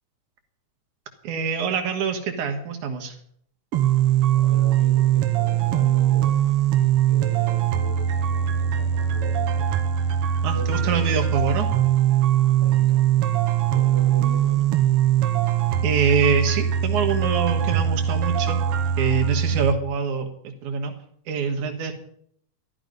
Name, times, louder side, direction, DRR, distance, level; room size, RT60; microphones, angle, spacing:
voice 1, 1.2-3.2 10.4-11.7 15.8-18.6 19.0-20.3 20.6-20.9 21.3-21.9, right 6 dB, 85° right, 5 dB, 2.9 m, -24 dB
sound 1, 3.7-19.7, right 10 dB, 65° right, 1.7 m, -21 dB
voice 2, 4.3-6.5 7.0-9.8 10.5-11.2 12.6-13.3 13.7-14.7, equal, 5° left, -3 dB, 5.5 m, -40 dB
13.0 x 12.5 x 5.3 m, 0.66 s
omnidirectional pair, 3.3 m